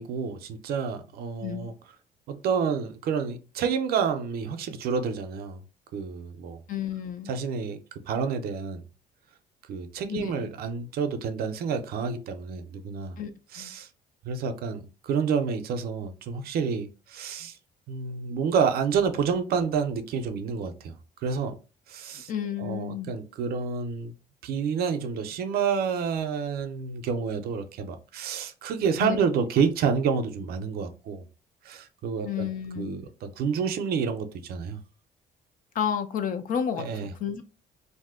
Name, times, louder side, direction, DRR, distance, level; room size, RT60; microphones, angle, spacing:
voice 1, 0.0-1.7 2.3-5.6 5.9-6.6 7.3-7.8 8.1-8.8 9.7-13.2 13.5-13.9 14.2-17.6 17.9-20.9 21.2-21.6 21.9-22.3 22.6-24.1 24.4-31.2 31.6-32.5 32.8-34.8 36.8-37.1, right 6 dB, 65° right, 0.6 m, -29 dB
voice 2, 6.7-7.4 10.1-10.5 13.2-13.3 13.6-13.7 22.3-23.1 29.0-29.2 32.2-33.0 35.7-37.4, left 8 dB, 55° left, 0.5 m, -31 dB
2.6 x 2.1 x 3.6 m
cardioid pair, 110°, 17 cm